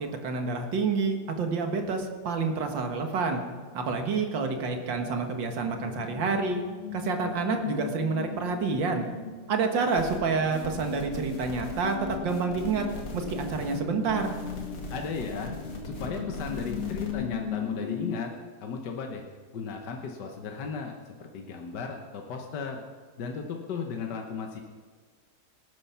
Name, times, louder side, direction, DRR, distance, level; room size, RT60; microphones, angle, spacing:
voice 1, 0.0-3.4 3.7-6.6 6.9-9.1 9.5-12.9 13.1-14.3, right 4 dB, 90° right, 4 dB, 2.2 m, -28 dB
sound 1, 3.3-18.2, left 7 dB, 40° left, 1.5 m, -38 dB
sound 2, 9.8-10.2 10.5-13.8 14.1-17.1, left 1 dB, 85° left, 2.8 m, -42 dB
voice 2, 14.9-15.5 15.8-18.3 18.6-19.2 19.5-20.9 21.2-22.8 23.2-24.6, left 5 dB, 70° left, 2 dB, 1.7 m, -35 dB
18.0 x 9.8 x 5.7 m, 1.5 s
omnidirectional pair, 2.0 m